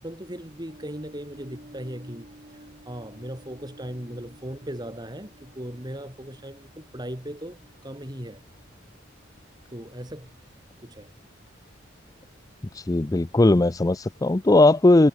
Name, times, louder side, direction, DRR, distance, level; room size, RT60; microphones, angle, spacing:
voice 1, 0.0-8.4 9.7-11.1, equal, 20° right, 6.7 m, -38 dB
sound 1, 0.7-9.7, right 1 dB, 35° right, 5.1 m, -52 dB
voice 2, 12.7-15.1, left 2 dB, 15° left, 0.4 m, -18 dB
head